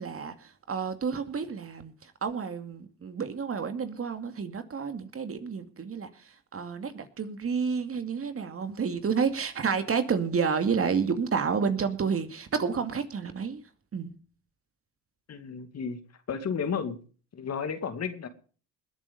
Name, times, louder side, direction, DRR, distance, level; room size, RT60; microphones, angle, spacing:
voice 1, 0.0-6.1 6.5-13.6 13.9-14.2, right 6 dB, 45° right, 2.4 m, -30 dB
voice 2, 15.3-16.0 16.3-17.0 17.3-18.3, left 6 dB, 50° left, 2.4 m, -32 dB
20.5 x 7.5 x 5.4 m
supercardioid pair, 60°, 33 cm